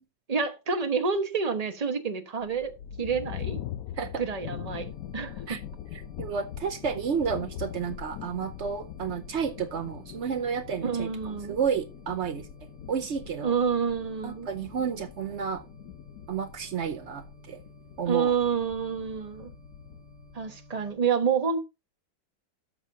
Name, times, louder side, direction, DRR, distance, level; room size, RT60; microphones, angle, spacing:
voice 1, 0.3-2.7 3.0-3.6 4.2-5.6 10.8-11.6 13.4-14.5 18.1-19.5 20.3-21.6, right 6 dB, 30° right, 0.8 m, -28 dB
sound 1, 2.4-20.5, left 10 dB, 75° left, 0.8 m, -42 dB
sound 2, 4.7-20.9, left 1 dB, 45° right, 2.7 m, -53 dB
voice 2, 5.9-12.5 12.9-13.5 14.2-15.6 16.3-17.6 18.0-18.3, right 6 dB, 90° right, 0.6 m, -31 dB
13.0 x 6.9 x 2.7 m
omnidirectional pair, 2.2 m